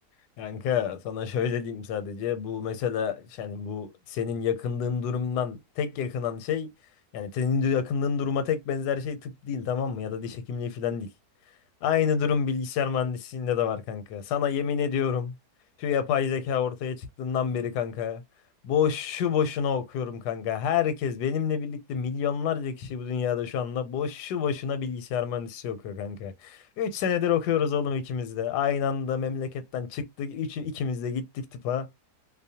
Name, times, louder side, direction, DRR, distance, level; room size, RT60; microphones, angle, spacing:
voice 1, 0.4-6.7 7.1-11.1 11.8-15.3 15.8-18.2 18.6-31.9, left 7 dB, 80° left, 1.1 m, -28 dB
2.6 x 2.0 x 2.7 m
omnidirectional pair, 1.7 m